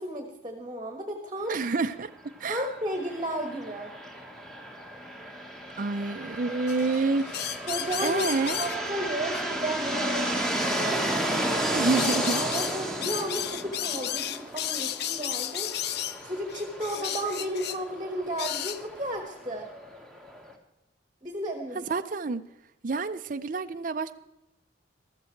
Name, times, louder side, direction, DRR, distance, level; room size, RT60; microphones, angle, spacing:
voice 1, 0.0-1.6 2.5-3.9 7.6-8.2 8.6-11.0 12.3-15.7 16.2-19.7 21.2-21.8, right 1 dB, 20° right, 5 dB, 1.3 m, -33 dB
voice 2, 1.5-2.1 2.4-2.6 5.8-7.3 8.0-8.6 11.7-12.4 21.7-22.4 22.8-24.1, right 3 dB, 40° right, 8 dB, 0.5 m, -28 dB
sound 1, 2.9-20.5, right 1 dB, ahead, 1.3 m, -33 dB
sound 2, 6.7-8.8 9.3-9.4 10.3-10.9 11.9-17.8 18.4-18.8, left 11 dB, 55° left, 0.5 m, -33 dB
14.0 x 13.5 x 4.5 m, 0.93 s
head